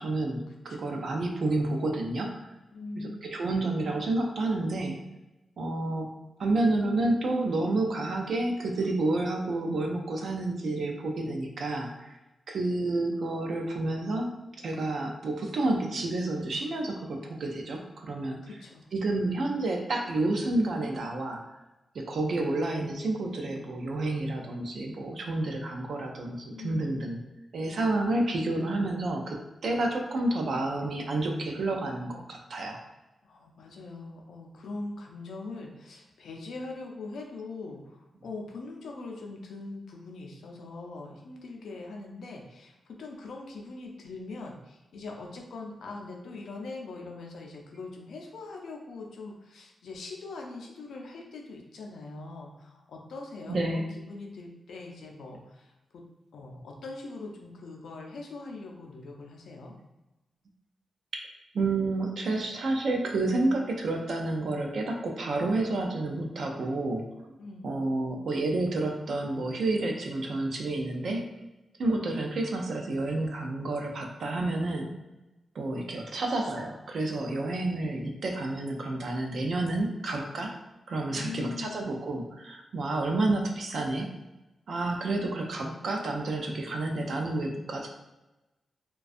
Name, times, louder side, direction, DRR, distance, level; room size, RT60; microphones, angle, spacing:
voice 1, 0.0-2.5 3.0-5.0 5.6-6.1 6.4-12.2 12.5-14.3 14.6-18.4 18.9-21.4 21.9-27.2 27.5-32.8 53.5-53.9 61.5-67.1 67.6-71.3 71.8-74.9 75.5-80.5 80.9-84.1 84.7-87.9, right 2 dB, 65° right, 2 dB, 0.4 m, -30 dB
voice 2, 0.7-1.0 2.7-3.3 18.4-18.9 26.5-27.0 33.2-56.0 56.3-59.7 67.4-67.7 81.2-81.8, left 3 dB, 85° left, 0 dB, 0.4 m, -42 dB
2.4 x 2.2 x 2.4 m, 1.0 s
wide cardioid pair, 130°, 0 cm